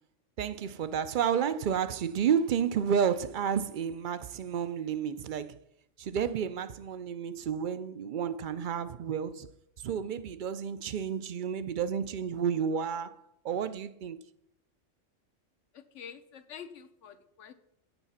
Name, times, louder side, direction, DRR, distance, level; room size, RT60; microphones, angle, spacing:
voice 1, 0.4-5.6 6.0-9.5 9.8-13.1 13.4-14.2, right 7 dB, 60° right, 0.5 m, -31 dB
voice 2, 15.7-17.5, left 7 dB, 70° left, 1.2 m, -47 dB
8.9 x 7.0 x 5.7 m
omnidirectional pair, 1.3 m